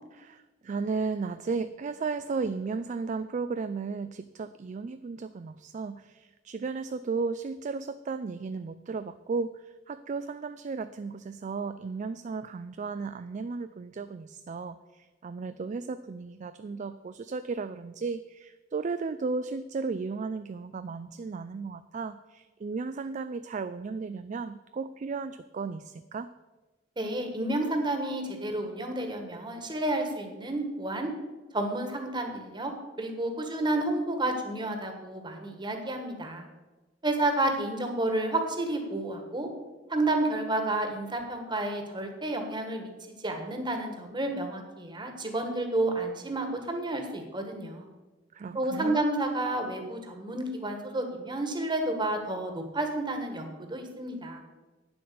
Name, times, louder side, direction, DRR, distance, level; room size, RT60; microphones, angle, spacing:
voice 1, 0.1-26.3 48.3-49.0, right 4 dB, 40° right, 12 dB, 0.3 m, -35 dB
voice 2, 27.0-31.1 31.5-32.7 33.0-36.4 37.0-39.5 39.9-42.9 43.2-47.9 48.5-54.4, right 2 dB, 25° right, 4 dB, 1.6 m, -30 dB
9.4 x 7.8 x 6.9 m, 1.2 s
head